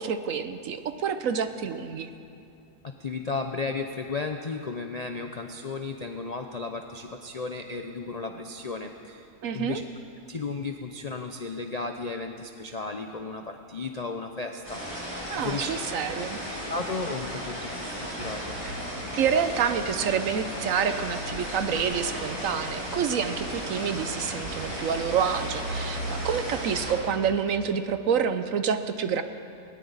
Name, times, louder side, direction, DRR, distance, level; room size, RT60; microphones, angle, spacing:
voice 1, 0.0-2.1 9.4-9.8 15.3-16.4 19.2-29.2, right 7 dB, 65° right, 10 dB, 1.0 m, -28 dB
voice 2, 3.0-9.8 10.3-15.7 16.7-18.6, left 4 dB, 50° left, 4 dB, 0.4 m, -34 dB
sound 1, 14.6-26.9, equal, 20° right, 5.6 m, -35 dB
sound 2, 18.2-27.4, right 2 dB, 80° right, 1.9 m, -40 dB
19.5 x 18.0 x 4.0 m, 2.6 s
omnidirectional pair, 1.7 m